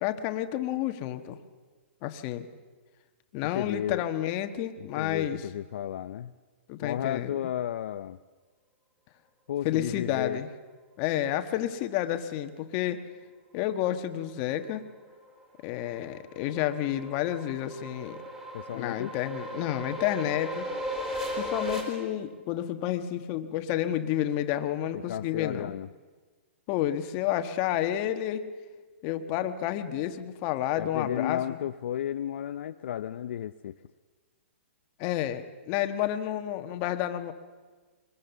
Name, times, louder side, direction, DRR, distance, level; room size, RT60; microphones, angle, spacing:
voice 1, 0.0-1.4 2.0-2.5 3.3-5.4 6.7-7.3 9.6-10.5 11.0-13.0 13.5-14.9 15.6-18.2 18.7-20.7 21.4-25.7 26.7-28.5 29.0-31.6 35.0-37.3, left 12 dB, 35° left, 8 dB, 1.3 m, -30 dB
voice 2, 3.5-4.1 4.8-6.3 6.8-8.2 9.5-10.4 18.5-19.1 24.9-25.9 30.8-33.8, left 10 dB, 60° left, 10 dB, 0.6 m, -33 dB
sound 1, 15.2-21.8, equal, 10° right, 4.1 m, -37 dB
22.5 x 20.5 x 7.1 m, 1.4 s
hypercardioid pair, 150°, 7 cm